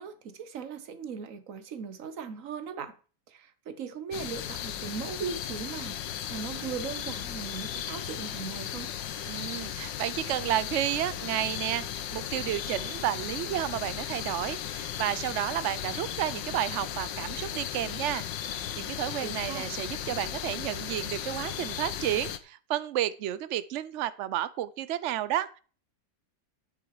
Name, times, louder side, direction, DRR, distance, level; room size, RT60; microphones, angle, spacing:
voice 1, 0.0-2.9 3.3-8.9 19.2-19.7, right 6 dB, 50° right, 1.3 m, -38 dB
sound 1, 4.1-22.4, left 10 dB, 75° left, 1.5 m, -36 dB
voice 2, 9.2-25.6, right 12 dB, 85° right, 0.6 m, -31 dB
11.0 x 8.9 x 4.8 m
omnidirectional pair, 2.0 m